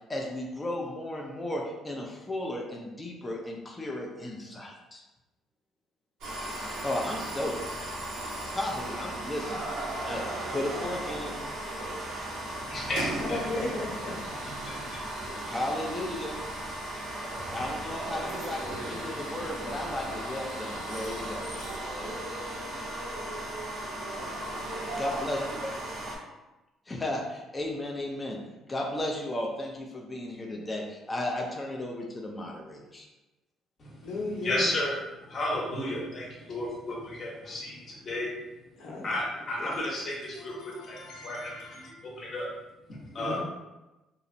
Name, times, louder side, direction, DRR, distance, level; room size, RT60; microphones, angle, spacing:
voice 1, 0.1-5.0 6.8-7.7 8.4-10.2 10.5-11.3 15.4-16.4 17.5-21.5 25.0-25.4 26.9-33.0, left 1 dB, 15° left, -1 dB, 0.4 m, -34 dB
sound 1, 6.2-26.2, right 1 dB, 80° right, 0.7 m, -36 dB
voice 2, 12.6-13.4 14.4-15.0 33.8-38.3 39.0-41.7 42.0-42.5 42.9-43.4, left 1 dB, 40° left, -4 dB, 0.9 m, -33 dB
voice 3, 13.2-14.1 15.3-15.4 34.0-34.7 38.8-39.1 39.6-39.7 40.2-41.9 43.2-43.4, left 2 dB, 75° left, -3 dB, 0.7 m, -36 dB
2.8 x 2.0 x 2.5 m, 1.0 s
cardioid pair, 115°, 0 cm